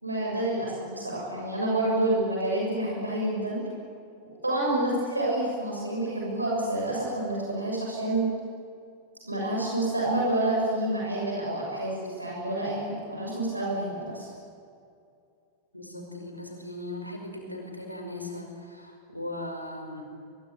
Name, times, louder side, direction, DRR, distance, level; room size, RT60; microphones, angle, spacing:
voice 1, 0.0-3.6 4.4-8.3 9.2-14.3, right 1 dB, 85° right, -3 dB, 6.9 m, -28 dB
voice 2, 15.7-20.0, left 1 dB, 90° left, 2 dB, 5.7 m, -38 dB
23.0 x 22.5 x 9.6 m, 2.4 s
figure-of-eight pair, 90°, 0 cm